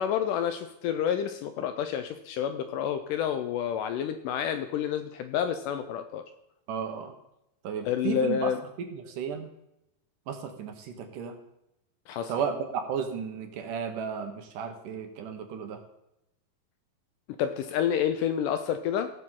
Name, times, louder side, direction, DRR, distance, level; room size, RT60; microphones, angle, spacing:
voice 1, 0.0-6.2 7.8-8.6 12.1-12.3 17.4-19.1, left 9 dB, 80° left, 9 dB, 2.0 m, -29 dB
voice 2, 6.7-7.1 7.6-8.5 8.8-9.5 10.3-11.3 12.3-15.8, right 7 dB, 70° right, 5 dB, 2.4 m, -34 dB
16.5 x 6.8 x 3.7 m, 0.86 s
omnidirectional pair, 4.1 m